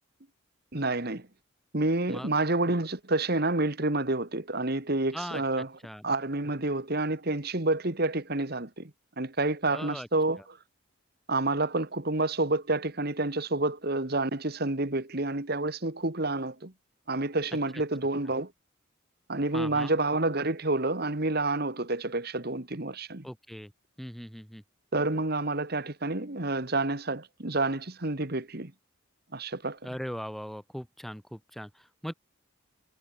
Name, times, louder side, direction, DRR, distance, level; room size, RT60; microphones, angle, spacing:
voice 1, 0.7-1.3 1.7-5.7 6.0-8.9 9.2-10.6 11.3-16.7 17.1-18.5 19.3-23.3 24.9-28.7 29.3-29.8, right 2 dB, 50° right, 1.8 m, -29 dB
voice 2, 5.1-6.1 9.7-10.1 19.5-19.9 23.2-23.7 24.0-24.6 29.8-32.1, equal, ahead, 3.0 m, -39 dB
head